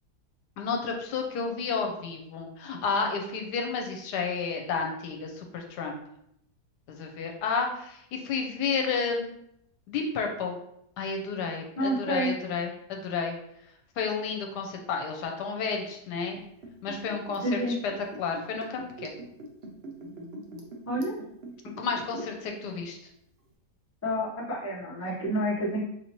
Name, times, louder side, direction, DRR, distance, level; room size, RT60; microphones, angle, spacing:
voice 1, 0.6-6.0 6.9-9.3 9.9-10.6 11.0-13.3 14.0-16.4 16.8-17.9 18.2-19.2 21.8-23.0, left 5 dB, 80° left, 3 dB, 1.2 m, -31 dB
voice 2, 11.8-12.3 17.4-17.8 20.9-21.1 24.0-25.8, equal, 10° left, -5 dB, 0.7 m, -29 dB
Liquid, 16.3-22.5 22.7-22.8, right 1 dB, 55° right, 0.7 m, -42 dB
4.9 x 2.8 x 2.9 m, 0.75 s
omnidirectional pair, 1.8 m